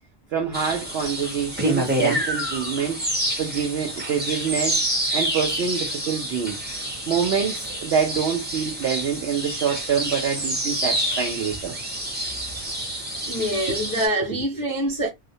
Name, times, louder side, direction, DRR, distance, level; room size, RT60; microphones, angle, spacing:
voice 1, 0.3-3.0 3.4-4.8 5.1-6.6 7.1-11.8 13.7-13.8 14.2-14.3, right 7 dB, 65° right, 0.7 m, -26 dB
sound 1, 0.5-14.1, right 1 dB, 10° right, 0.7 m, -28 dB
voice 2, 13.3-15.1, right 1 dB, 30° left, 0.3 m, -25 dB
2.4 x 2.1 x 2.6 m
omnidirectional pair, 1.3 m